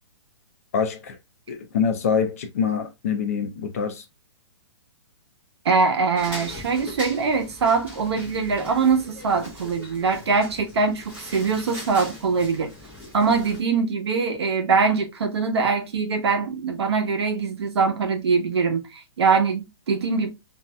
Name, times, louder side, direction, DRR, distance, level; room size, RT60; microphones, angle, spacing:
voice 1, 0.7-1.2 1.5-4.0, left 6 dB, 35° left, 0.4 m, -25 dB
voice 2, 5.6-12.7 13.1-20.3, right 5 dB, 70° right, 1.0 m, -23 dB
sound 1, 6.2-13.6, left 1 dB, 10° right, 1.1 m, -40 dB
3.1 x 2.7 x 2.2 m
hypercardioid pair, 170°, 14 cm